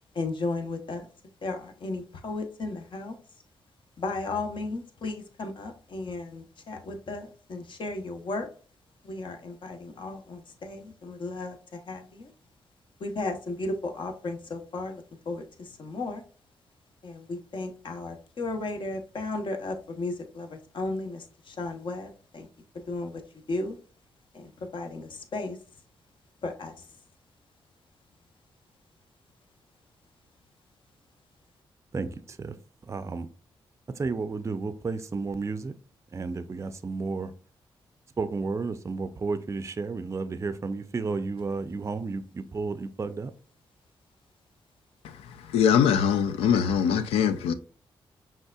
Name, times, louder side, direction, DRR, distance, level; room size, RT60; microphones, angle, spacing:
voice 1, 0.1-1.1 1.4-3.2 4.0-8.5 9.0-12.3 13.0-16.2 17.0-22.5 22.9-23.2 23.5-23.7 24.3-25.6 26.4-26.9, left 2 dB, 60° left, 0.9 m, -35 dB
voice 2, 31.9-32.5 32.9-33.3 34.0-35.7 36.1-37.3 38.2-43.3, right 4 dB, 30° right, 0.4 m, -32 dB
voice 3, 45.0-47.5, left 8 dB, 90° left, 0.4 m, -23 dB
5.4 x 3.5 x 2.3 m
supercardioid pair, 55°, 10 cm